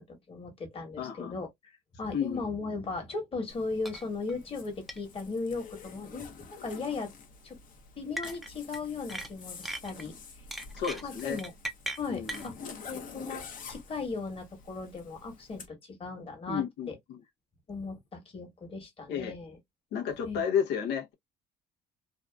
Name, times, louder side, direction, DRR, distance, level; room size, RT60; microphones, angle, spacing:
voice 1, 0.0-1.5 2.0-6.3 6.6-7.1 7.4-7.6 8.0-10.2 11.0-11.5 12.0-12.5 12.9-16.9 17.7-19.6 20.2-20.4, left 4 dB, 35° left, 1.3 m, -37 dB
voice 2, 1.0-1.3 2.1-2.4 10.7-11.4 12.1-12.4 16.5-17.2 19.1-19.3 19.9-21.1, left 7 dB, 85° left, 0.8 m, -32 dB
Zipper (clothing), 3.5-15.7, left 5 dB, 50° left, 0.8 m, -48 dB
sound 1, 3.9-4.0 4.3-4.4 4.9-5.0 6.2-6.5 8.2-8.8 9.1-10.0 10.5-12.5, right 1 dB, ahead, 0.4 m, -38 dB
2.8 x 2.4 x 2.3 m
cardioid pair, 110°, 17 cm